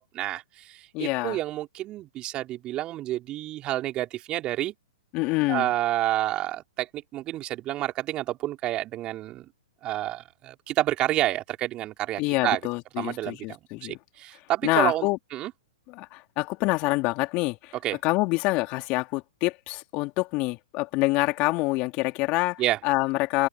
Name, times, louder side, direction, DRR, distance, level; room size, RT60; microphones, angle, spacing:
voice 1, 0.0-4.7 5.5-9.5 9.8-12.6 13.0-15.5 17.8-18.0 22.6-22.8, right 14 dB, 30° right, 4.0 m, -29 dB
voice 2, 0.9-1.4 5.1-5.7 12.2-14.0 14.6-15.2 15.9-17.7 18.0-23.5, left 23 dB, 40° left, 2.7 m, -26 dB
open air
hypercardioid pair, 120°, 3 cm